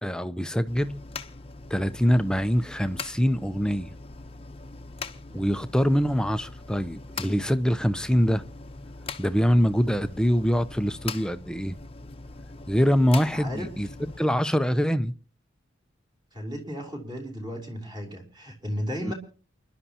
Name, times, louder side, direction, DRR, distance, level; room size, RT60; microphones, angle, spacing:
voice 1, 0.0-1.0 1.7-3.9 5.3-8.4 9.2-11.8 12.7-15.1 19.0-19.1, equal, 5° left, 0.6 m, -24 dB
sound 1, 0.7-14.2, left 4 dB, 30° left, 0.9 m, -41 dB
voice 2, 13.3-13.7 16.3-19.1, equal, 20° right, 3.5 m, -35 dB
28.5 x 11.0 x 2.9 m
head